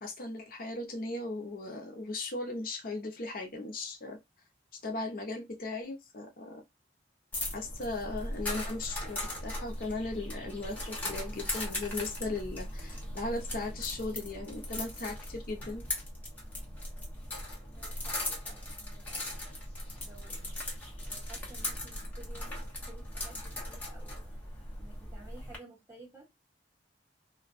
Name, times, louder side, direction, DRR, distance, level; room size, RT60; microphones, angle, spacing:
voice 1, 0.0-4.2 4.8-6.6 7.5-15.8, left 2 dB, 50° left, 0.5 m, -37 dB
sound 1, 7.3-25.6, left 1 dB, 10° left, 0.7 m, -39 dB
voice 2, 17.7-19.5 20.0-20.7 21.1-24.3 24.8-26.3, right 2 dB, 15° right, 1.2 m, -54 dB
2.5 x 2.1 x 2.4 m
head